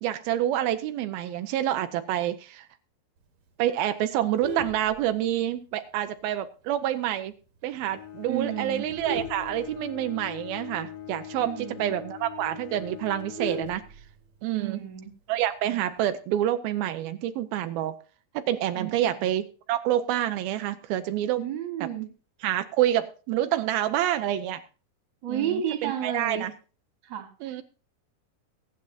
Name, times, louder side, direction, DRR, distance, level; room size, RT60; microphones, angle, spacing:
voice 1, 0.0-2.7 3.6-7.3 7.6-13.8 14.4-14.8 15.3-18.0 18.3-21.4 22.4-24.6 25.3-26.5 27.4-27.6, right 12 dB, 85° right, 9 dB, 2.7 m, -27 dB
Vehicle horn car horn honking, 4.1-5.6 6.1-6.3 6.6-6.7 7.2-7.3 7.6-7.9 8.5-10.3 10.7-10.8 11.1-11.2 11.6-11.7 12.0-12.1 12.4-14.4 15.6-16.0, right 4 dB, 50° right, 2.8 m, -37 dB
Bowed string instrument, 7.7-14.4, left 11 dB, 60° left, 1.9 m, -42 dB
voice 2, 8.3-8.8 11.4-11.9 14.5-15.1 18.7-19.1 21.4-22.1 25.2-26.5 27.0-27.6, right 9 dB, 35° right, 5 dB, 2.9 m, -32 dB
22.5 x 9.0 x 2.7 m, 0.37 s
omnidirectional pair, 4.2 m